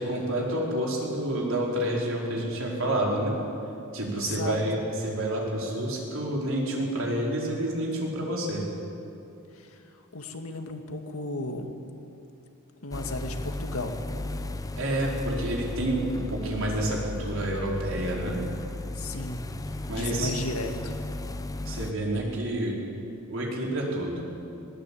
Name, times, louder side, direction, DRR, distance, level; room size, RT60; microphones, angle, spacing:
voice 1, 0.0-3.3 3.9-8.6 14.8-18.4 19.9-20.3 21.6-22.7 23.3-24.2, right 1 dB, 65° right, -2 dB, 4.8 m, -29 dB
voice 2, 4.1-4.6 9.5-9.8 10.1-11.7 12.8-14.0 19.0-19.4 19.9-21.0, left 2 dB, 75° left, 5 dB, 2.1 m, -34 dB
sound 1, 12.9-21.9, left 2 dB, 15° left, 0.7 m, -35 dB
20.5 x 19.0 x 8.7 m, 2.7 s
head